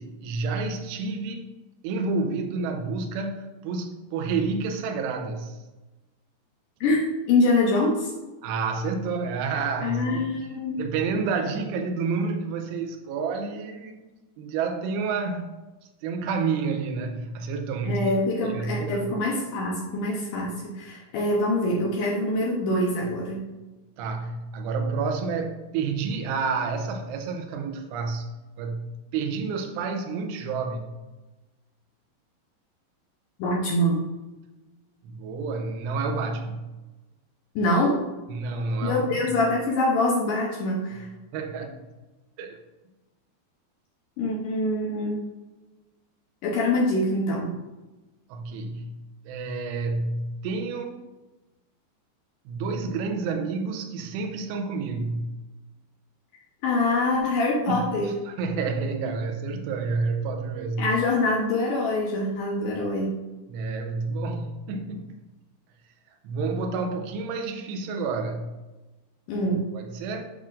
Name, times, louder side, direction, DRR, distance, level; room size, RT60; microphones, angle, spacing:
voice 1, 0.0-1.5 1.8-5.6 8.4-10.2 10.8-14.0 14.4-15.6 16.0-18.1 18.4-19.1 24.0-28.3 28.6-28.9 29.1-30.9 35.0-36.7 38.3-39.1 41.3-41.8 42.4-42.6 48.3-48.9 49.3-51.0 52.5-55.3 57.7-60.9 63.5-65.1 66.2-68.5 69.7-70.2, right 4 dB, 85° right, 4 dB, 2.9 m, -29 dB
voice 2, 6.8-8.1 9.8-10.8 17.8-23.4 33.4-34.0 37.6-38.0 38.8-41.1 44.2-45.2 46.4-47.5 56.6-58.1 60.8-63.2 69.3-69.6, left 2 dB, 80° left, -2 dB, 1.9 m, -24 dB
8.5 x 5.7 x 2.5 m, 1.1 s
omnidirectional pair, 4.9 m